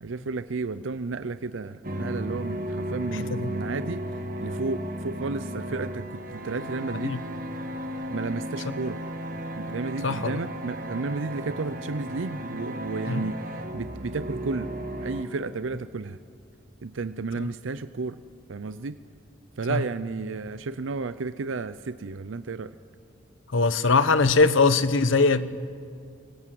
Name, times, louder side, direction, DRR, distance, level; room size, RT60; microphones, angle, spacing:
voice 1, 0.0-4.0 4.4-7.2 8.1-9.0 9.6-14.7 15.0-16.2 16.8-18.2 18.5-19.0 19.6-22.7, right 4 dB, 85° right, 13 dB, 0.6 m, -32 dB
sound 1, 1.8-15.2, equal, 45° right, 1.7 m, -34 dB
voice 2, 10.0-10.4 13.1-13.3 19.7-19.8 23.5-25.6, left 4 dB, 90° left, 13 dB, 1.0 m, -21 dB
23.5 x 23.5 x 7.7 m, 2.3 s
head